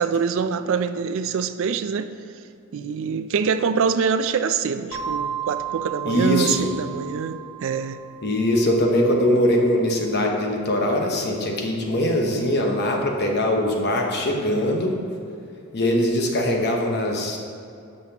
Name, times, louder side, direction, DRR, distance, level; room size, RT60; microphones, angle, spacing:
voice 1, 0.0-2.1 2.7-8.0, right 6 dB, 60° right, 11 dB, 0.4 m, -24 dB
sound 1, 4.9-9.3, right 8 dB, 90° left, 1.7 m, -34 dB
voice 2, 6.0-6.7 8.2-15.0 15.7-17.4, left 1 dB, 50° left, 1 dB, 1.1 m, -22 dB
12.5 x 5.8 x 2.9 m, 2.5 s
head